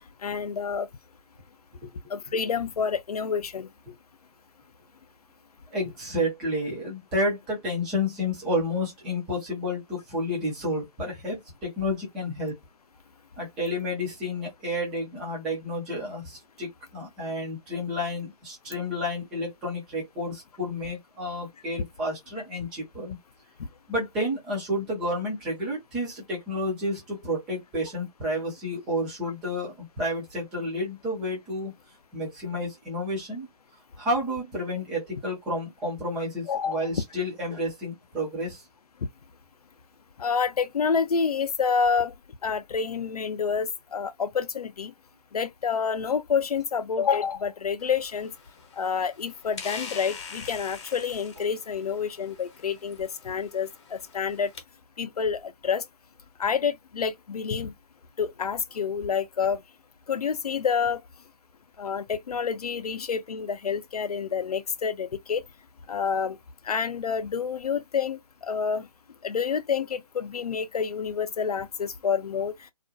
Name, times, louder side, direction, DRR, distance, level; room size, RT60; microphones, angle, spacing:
voice 1, 0.2-0.9 2.1-3.7 36.5-36.8 40.2-42.1 42.4-44.9 45.3-48.3 48.7-54.5 55.0-55.8 56.4-57.7 58.2-59.6 60.1-61.0 61.8-65.4 65.9-66.4 66.6-68.9 69.2-72.5, left 6 dB, 70° left, 0.5 m, -28 dB
voice 2, 5.7-12.6 13.4-23.2 23.9-31.7 32.1-33.5 34.0-38.6, left 1 dB, 5° right, 0.3 m, -30 dB
sound 1, 47.8-54.6, left 5 dB, 45° left, 0.8 m, -44 dB
2.4 x 2.0 x 2.6 m
figure-of-eight pair, 145°, 20 cm